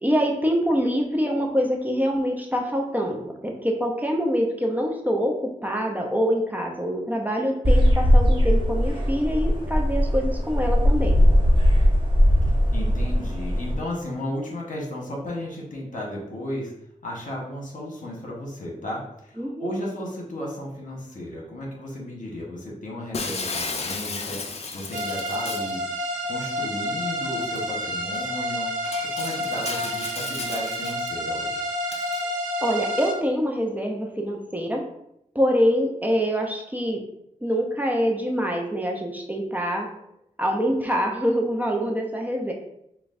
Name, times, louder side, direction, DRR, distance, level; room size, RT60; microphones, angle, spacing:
voice 1, 0.0-11.2 19.4-19.7 32.6-34.8 35.3-37.0 37.4-39.9 40.4-42.5, equal, 10° right, 0 dB, 0.6 m, -25 dB
sound 1, 7.6-13.7, equal, 35° right, 1.2 m, -19 dB
voice 2, 12.7-16.7 17.0-25.8 26.3-28.7 29.1-31.6, left 1 dB, 70° left, -2 dB, 1.1 m, -34 dB
Shatter, 23.1-25.8 27.6-27.7 28.1-28.3 28.8-31.1 31.9-32.2, left 4 dB, 50° left, 0.5 m, -34 dB
sound 2, 24.9-33.2, equal, 65° right, 0.8 m, -29 dB
5.9 x 2.3 x 2.5 m, 0.77 s
wide cardioid pair, 80°, 14 cm